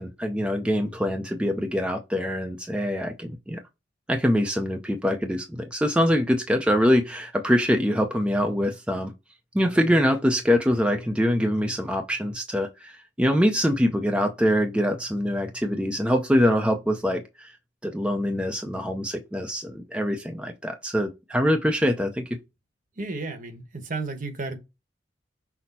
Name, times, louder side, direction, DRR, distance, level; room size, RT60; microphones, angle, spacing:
voice 1, 0.0-3.6 4.1-9.1 9.5-12.9 13.2-17.5 17.8-22.3, equal, 5° right, 0.5 m, -24 dB
voice 2, 23.0-24.6, right 3 dB, 45° right, 1.0 m, -33 dB
6.0 x 2.1 x 4.1 m
head